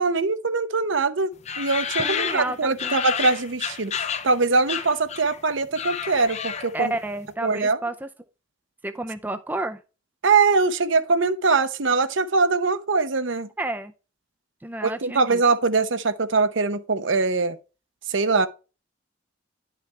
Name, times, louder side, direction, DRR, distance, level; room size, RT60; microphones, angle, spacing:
voice 1, 0.0-3.9 4.2-6.9 7.4-7.8 10.2-13.5 14.8-17.6 18.1-18.5, right 4 dB, 70° right, 0.8 m, -22 dB
sound 1, 1.5-4.4 4.7-5.4 5.6-6.9, left 7 dB, 35° left, 0.6 m, -30 dB
voice 2, 2.0-3.0 6.7-8.1 8.8-9.8 13.6-13.9 14.6-15.4, right 2 dB, 10° right, 0.5 m, -31 dB
10.5 x 5.8 x 3.3 m
head